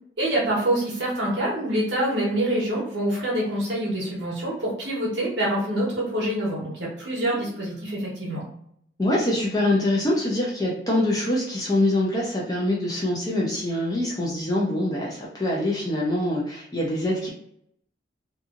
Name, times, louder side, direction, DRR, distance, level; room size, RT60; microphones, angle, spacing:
voice 1, 0.2-8.4, right 1 dB, 65° right, -5 dB, 1.0 m, -26 dB
voice 2, 9.0-17.3, left 1 dB, 20° left, -4 dB, 0.5 m, -24 dB
2.7 x 2.6 x 2.4 m, 0.69 s
head